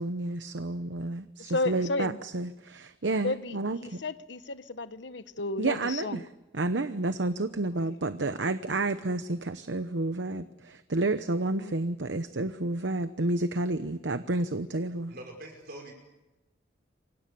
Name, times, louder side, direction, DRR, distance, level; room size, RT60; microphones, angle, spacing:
voice 1, 0.0-4.0 5.6-6.2 6.5-15.1, right 2 dB, 75° right, 1.0 m, -30 dB
voice 2, 1.4-2.2 3.2-6.2 11.6-11.8, left 2 dB, 70° left, 1.2 m, -33 dB
voice 3, 15.1-15.9, right 1 dB, 60° right, 5.8 m, -43 dB
28.0 x 24.5 x 7.0 m
head